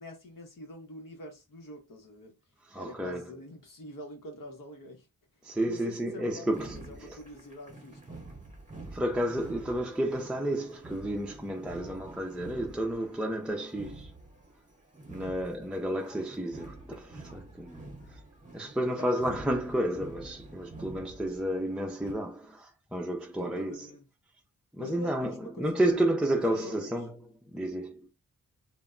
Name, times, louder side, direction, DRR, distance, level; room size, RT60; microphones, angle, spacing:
voice 1, 0.0-2.4 2.7-5.1 5.6-8.2 15.2-15.7 19.1-19.2 23.4-24.0 24.8-26.1 26.5-26.9, left 1 dB, 65° left, 0.9 m, -45 dB
voice 2, 2.6-3.3 5.4-7.2 8.9-14.1 15.1-16.9 17.3-18.2 18.5-23.9 24.7-27.1 27.4-28.1, right 1 dB, 5° right, 0.4 m, -31 dB
sound 1, 6.5-22.1, right 2 dB, 20° right, 0.9 m, -48 dB
2.2 x 2.1 x 3.6 m
cardioid pair, 75°, 35 cm